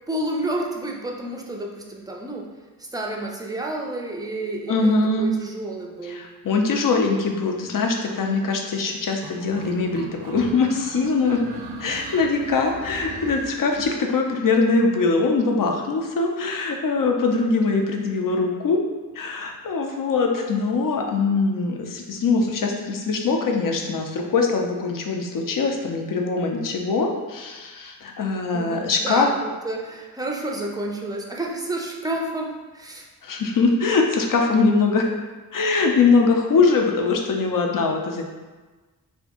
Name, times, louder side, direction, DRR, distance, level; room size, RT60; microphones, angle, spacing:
voice 1, 0.1-2.5 2.8-6.2 28.5-33.1, right 1 dB, 10° right, 0 dB, 0.4 m, -30 dB
voice 2, 4.7-5.3 6.0-11.4 11.8-18.8 19.1-29.3 33.2-35.1 35.5-38.3, left 4 dB, 60° left, 2 dB, 0.5 m, -22 dB
sound 1, 9.2-14.0, right 3 dB, 85° right, 0.5 m, -38 dB
2.8 x 2.6 x 3.6 m, 1.3 s
wide cardioid pair, 95°, 37 cm